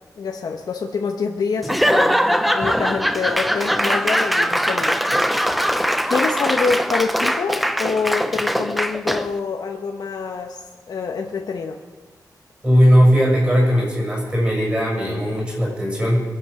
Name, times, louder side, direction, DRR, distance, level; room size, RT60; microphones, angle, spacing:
voice 1, 0.2-5.0 6.0-11.8, left 5 dB, 65° left, 2 dB, 1.0 m, -26 dB
Laughter / Applause / Crowd, 1.6-9.4, equal, ahead, 0.4 m, -21 dB
voice 2, 12.6-16.2, equal, 15° right, -2 dB, 6.3 m, -17 dB
23.0 x 8.0 x 6.5 m, 1.3 s
wide cardioid pair, 175°, 7 cm